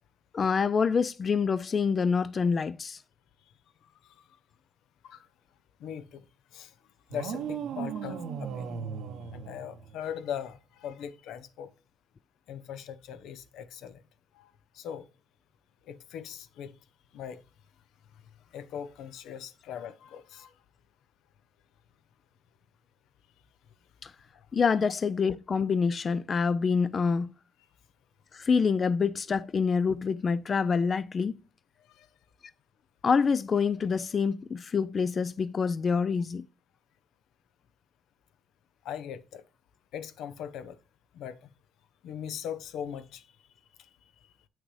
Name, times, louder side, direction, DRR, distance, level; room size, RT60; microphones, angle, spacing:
voice 1, 0.3-3.0 24.0-24.1 24.5-27.3 28.3-31.4 33.0-36.5, left 5 dB, 40° left, 0.3 m, -26 dB
voice 2, 5.8-6.2 6.5-6.7 7.1-8.7 9.3-11.7 12.5-14.0 14.3-14.5 14.7-15.0 15.9-16.7 17.1-17.4 18.5-20.5 31.9-32.1 38.8-39.4 39.9-40.8 41.1-41.5 42.0-43.2, left 9 dB, 85° left, 0.6 m, -40 dB
sound 1, 7.1-10.2, right 7 dB, 85° right, 0.9 m, -37 dB
8.2 x 6.3 x 3.2 m
cardioid pair, 90°, 0 cm